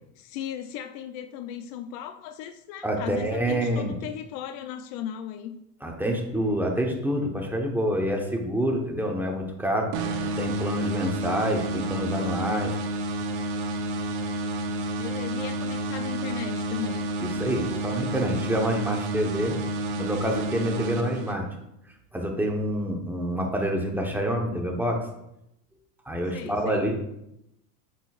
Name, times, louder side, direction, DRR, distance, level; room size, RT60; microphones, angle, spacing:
voice 1, 0.2-5.6 15.0-17.1 26.3-26.9, left 10 dB, 55° left, 9 dB, 0.6 m, -36 dB
voice 2, 2.8-3.9 5.8-9.9 10.4-12.8 17.2-19.6 20.0-21.5 22.1-25.1 26.0-27.0, equal, 5° right, 1 dB, 1.1 m, -27 dB
sound 1, 9.9-21.6, right 1 dB, 55° right, 1.1 m, -30 dB
8.0 x 6.3 x 2.5 m, 0.82 s
supercardioid pair, 110°, 47 cm